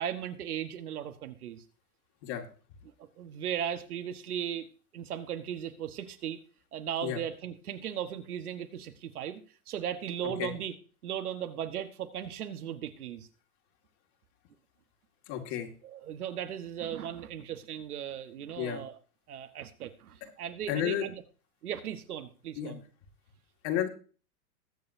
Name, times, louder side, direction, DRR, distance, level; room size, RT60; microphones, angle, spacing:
voice 1, 0.0-1.6 3.0-4.7 4.9-6.4 6.7-10.7 11.0-13.3 15.4-15.6 15.8-19.0 19.3-21.2 21.6-22.8, right 9 dB, 75° right, 8 dB, 1.5 m, -37 dB
voice 2, 15.3-15.7 18.6-18.8 20.7-21.0 22.6-22.7 23.6-23.9, left 10 dB, 50° left, 3 dB, 2.2 m, -31 dB
21.0 x 7.0 x 2.7 m, 0.39 s
hypercardioid pair, 110°, 45 cm